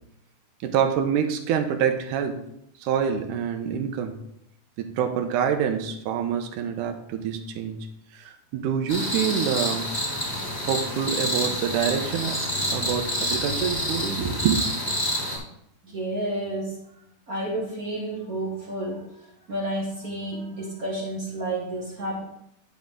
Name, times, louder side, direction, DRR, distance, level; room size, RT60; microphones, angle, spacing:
voice 1, 0.6-2.4 2.8-4.1 4.8-7.8 8.1-9.8 10.7-12.4 12.7-14.6, right 8 dB, 85° right, 6 dB, 2.3 m, -26 dB
sound 1, 8.9-15.4, equal, 15° left, 2.4 m, -28 dB
voice 2, 15.8-16.8 17.3-19.1 19.5-22.2, right 1 dB, 55° right, -2 dB, 1.0 m, -30 dB
10.5 x 5.3 x 3.6 m, 0.75 s
omnidirectional pair, 3.6 m